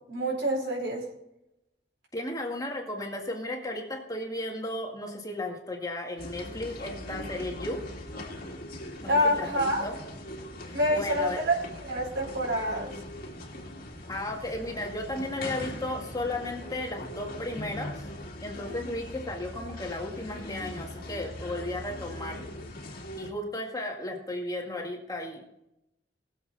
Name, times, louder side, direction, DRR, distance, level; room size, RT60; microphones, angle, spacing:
voice 1, 0.1-1.1 9.1-9.9 10.7-13.0, equal, 80° right, -3 dB, 4.4 m, -27 dB
voice 2, 2.1-7.8 9.1-10.0 10.7-11.4 14.1-18.1 18.4-22.4 22.9-25.4, left 1 dB, 20° left, 0 dB, 2.0 m, -35 dB
sound 1, 6.2-23.3, left 1 dB, 55° left, 2.1 m, -41 dB
20.0 x 7.5 x 4.0 m, 0.85 s
head